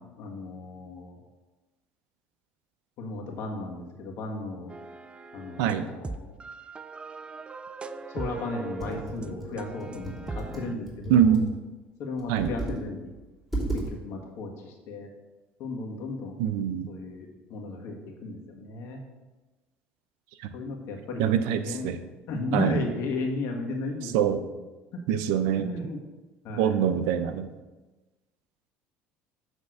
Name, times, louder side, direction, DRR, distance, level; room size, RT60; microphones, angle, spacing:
voice 1, 0.2-1.2 3.0-4.7 5.3-6.4 8.1-11.4 12.0-13.1 13.7-15.1 15.6-16.4 16.9-19.0 20.5-21.9 22.3-24.5 24.9-25.2 25.6-26.0 26.4-26.8, left 2 dB, 65° left, 1 dB, 1.7 m, -35 dB
sound 1, 4.7-10.7, right 4 dB, 20° right, 0.4 m, -40 dB
Computer keyboard, 8.8-11.5 12.2-12.8 13.1-13.2 13.5-13.9, right 2 dB, 5° right, 2.8 m, -34 dB
voice 2, 11.1-11.6 12.3-12.5 16.4-16.9 20.4-20.6 21.2-22.0 22.5-22.8 24.0-24.4 25.1-25.7 26.6-27.5, right 9 dB, 80° right, 10 dB, 0.6 m, -24 dB
8.0 x 3.5 x 6.5 m, 1.2 s
supercardioid pair, 90°, 5 cm